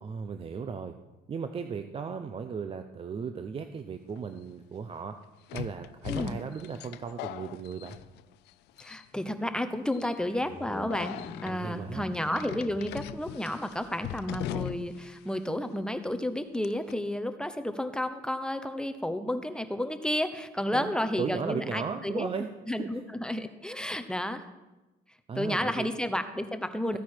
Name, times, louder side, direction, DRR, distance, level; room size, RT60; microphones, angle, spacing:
voice 1, 0.0-0.9 1.3-5.2 5.5-8.0 11.5-12.1 20.7-20.9 21.2-22.5 22.8-22.9 25.3-25.9, right 6 dB, 35° right, 8 dB, 0.6 m, -36 dB
sound 1, 4.2-4.3 5.5-8.5 8.8-9.3 9.9-10.2 10.9-11.5 12.3-15.1 15.3-15.4 16.6-16.9, left 14 dB, 85° left, 0.4 m, -39 dB
voice 2, 8.8-22.3 22.7-24.5 25.4-27.0, left 1 dB, 5° left, 9 dB, 0.8 m, -31 dB
sound 2, 10.0-14.2, left 4 dB, 35° left, 1.3 m, -46 dB
14.5 x 9.1 x 4.5 m, 1.1 s
cardioid pair, 110°, 17 cm